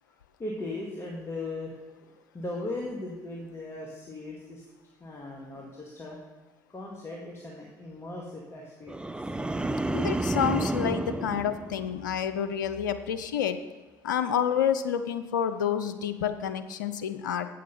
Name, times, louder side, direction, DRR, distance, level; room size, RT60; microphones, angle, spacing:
voice 1, 0.4-4.7 5.0-6.2 6.7-9.1, left 2 dB, 25° left, -2 dB, 1.8 m, -38 dB
sound 1, 8.9-12.3 12.7-13.1, right 2 dB, 10° right, 0.5 m, -31 dB
voice 2, 9.9-13.6 14.0-17.5, left 8 dB, 85° left, 10 dB, 0.5 m, -29 dB
8.2 x 6.6 x 5.4 m, 1.3 s
hypercardioid pair, 55°, 10 cm